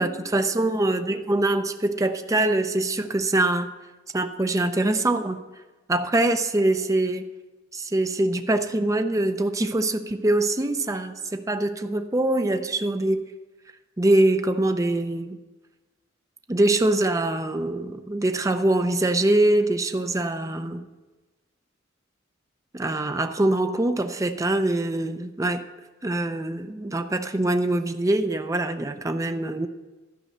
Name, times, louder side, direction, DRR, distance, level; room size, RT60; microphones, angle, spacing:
voice 1, 0.0-3.7 4.1-5.4 5.9-7.3 7.7-13.2 14.0-15.4 16.5-20.9 22.7-25.6 26.0-29.7, right 2 dB, 15° right, 7 dB, 0.5 m, -23 dB
12.0 x 5.4 x 7.8 m, 1.2 s
head